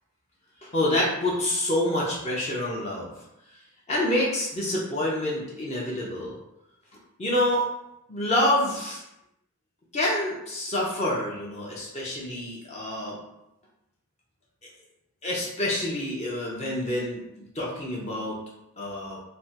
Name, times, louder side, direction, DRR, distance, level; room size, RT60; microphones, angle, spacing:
voice 1, 0.6-3.1 3.9-6.3 7.2-7.6 8.1-9.0 9.9-13.2 15.2-18.4 18.8-19.2, left 1 dB, 30° left, -4 dB, 0.5 m, -27 dB
3.2 x 2.1 x 2.7 m, 0.86 s
head